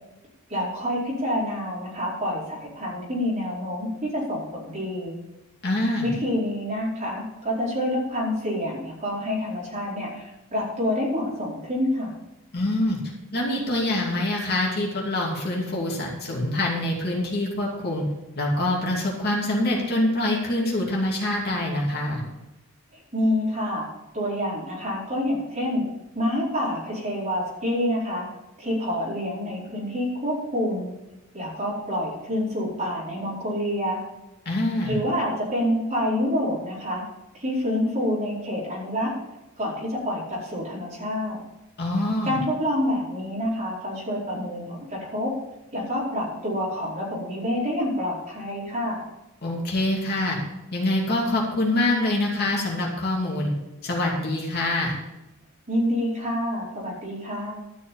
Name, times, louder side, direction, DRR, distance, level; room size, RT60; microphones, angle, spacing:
voice 1, 0.5-5.2 6.0-12.1 23.1-23.9 24.1-25.8 26.1-28.3 28.6-30.9 31.3-34.0 34.9-37.0 37.3-39.1 39.6-41.4 42.2-45.3 45.7-49.0 55.7-57.5, left 1 dB, 35° right, -6 dB, 4.7 m, -27 dB
voice 2, 5.6-6.1 12.5-13.0 13.3-18.0 18.3-22.2 34.4-35.0 41.8-42.4 49.4-50.4 50.7-53.5 53.8-54.9, left 1 dB, 45° left, -2 dB, 2.7 m, -25 dB
12.5 x 6.2 x 7.4 m, 0.99 s
head